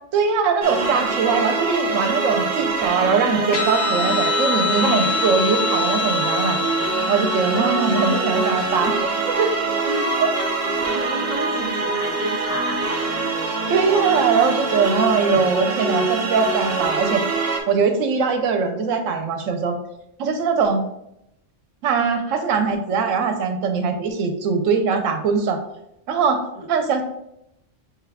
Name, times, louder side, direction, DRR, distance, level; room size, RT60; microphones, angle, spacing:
voice 1, 0.1-6.6 7.1-8.9 9.3-9.5 10.2-10.3 13.7-17.2 17.7-19.7 20.2-20.8 21.8-25.6 26.1-26.4 26.7-27.0, right 5 dB, 85° right, 6 dB, 1.0 m, -21 dB
sound 1, 0.6-17.6, right 3 dB, 55° right, 1.0 m, -24 dB
Guitar, 3.5-10.4, left 4 dB, 85° left, 1.2 m, -27 dB
voice 2, 7.5-8.7 9.8-12.9 14.4-14.6 26.5-26.7, left 1 dB, 35° left, -2 dB, 0.7 m, -30 dB
6.1 x 2.3 x 3.4 m, 0.82 s
omnidirectional pair, 1.3 m